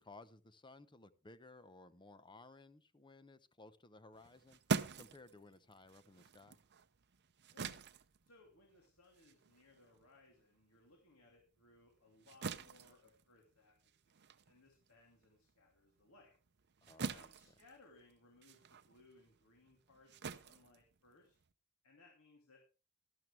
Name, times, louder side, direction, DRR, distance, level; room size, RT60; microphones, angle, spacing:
voice 1, 0.0-4.6 5.0-6.6 16.8-17.3, left 2 dB, 20° left, 0.8 m, -58 dB
sound 1, 4.1-10.9 11.3-21.5, right 4 dB, 55° right, 0.7 m, -45 dB
voice 2, 8.2-16.3 17.1-21.4 21.8-22.7, left 2 dB, 75° left, 2.8 m, -66 dB
12.5 x 12.5 x 3.3 m
head